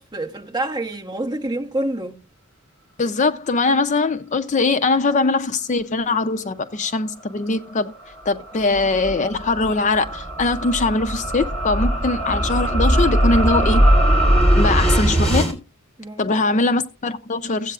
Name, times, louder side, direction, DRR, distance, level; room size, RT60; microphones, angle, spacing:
voice 1, 0.0-2.2 14.4-14.6 16.0-16.6, right 1 dB, 20° right, 0.9 m, -28 dB
voice 2, 3.0-7.9 8.3-13.9 14.5-15.6 16.2-17.7, left 3 dB, 35° left, 0.4 m, -21 dB
sound 1, 7.7-15.5, equal, 5° left, 2.8 m, -20 dB
16.0 x 8.2 x 2.3 m
head